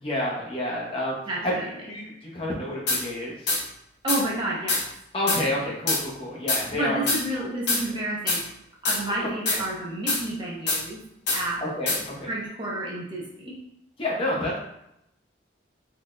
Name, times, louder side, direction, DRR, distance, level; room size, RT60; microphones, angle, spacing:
voice 1, 0.0-1.5 1.9-3.5 5.1-7.0 7.3-7.5 9.2-9.3 11.6-12.3 14.0-14.6, left 1 dB, 30° left, -4 dB, 0.8 m, -29 dB
voice 2, 1.3-1.8 4.0-4.8 6.7-8.4 8.8-11.0 11.3-11.6 12.3-13.6, right 1 dB, 25° right, -5 dB, 0.7 m, -30 dB
sound 1, 2.9-3.0 3.5-3.6 4.1-4.2 4.7-4.8 5.3-5.4 5.9-6.0 6.5-6.6 7.1-7.2 7.7-7.8 8.3-8.4 8.9-9.0 9.5-9.6 10.1-10.2 10.7-10.8 11.3-11.4 11.9-12.0, left 3 dB, 65° left, 1.1 m, -24 dB
3.8 x 3.3 x 2.5 m, 0.79 s
head